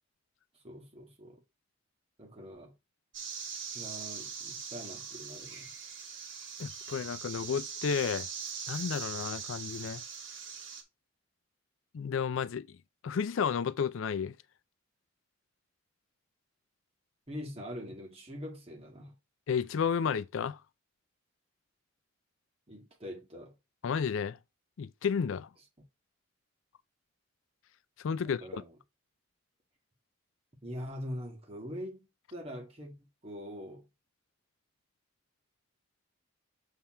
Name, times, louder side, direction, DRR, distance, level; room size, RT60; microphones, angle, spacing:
voice 1, 0.6-1.4 2.2-2.7 3.7-5.7 17.3-19.1 22.7-23.5 28.2-28.7 30.6-32.9 33.2-33.9, equal, 30° right, 2.0 m, -43 dB
sound 1, 3.1-10.8, right 6 dB, 70° right, 1.8 m, -41 dB
voice 2, 6.6-8.3 8.7-10.0 11.9-12.8 13.0-14.3 19.5-20.6 23.8-24.4 24.8-25.5 28.0-28.6, left 6 dB, 75° left, 0.4 m, -32 dB
7.1 x 3.5 x 4.3 m
head